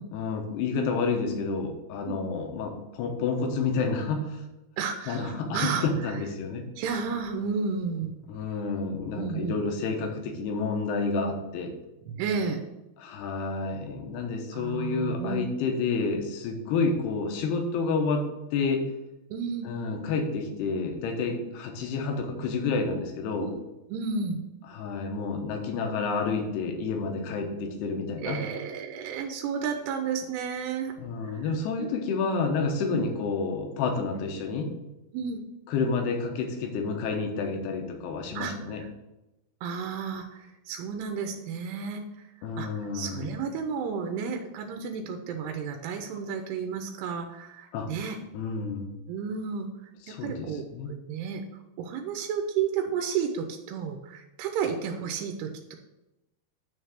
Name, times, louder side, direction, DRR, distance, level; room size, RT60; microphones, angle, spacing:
voice 1, 0.1-4.4 5.1-6.7 8.3-11.7 13.0-18.8 19.7-23.5 24.7-28.4 31.0-34.7 35.7-38.8 42.4-43.3 47.7-47.9 48.3-48.9 50.1-50.9, left 4 dB, 80° left, 3 dB, 2.9 m, -29 dB
voice 2, 4.8-5.9 6.8-8.1 9.1-9.6 12.0-12.6 14.5-15.4 19.3-19.7 23.4-23.6 23.9-24.4 28.2-30.9 31.2-31.5 31.8-31.9 32.9-33.0 35.1-35.4 38.4-38.9 39.6-48.2 49.1-55.8, right 6 dB, 90° right, 4 dB, 2.7 m, -32 dB
9.4 x 3.3 x 6.4 m, 0.97 s
omnidirectional pair, 4.7 m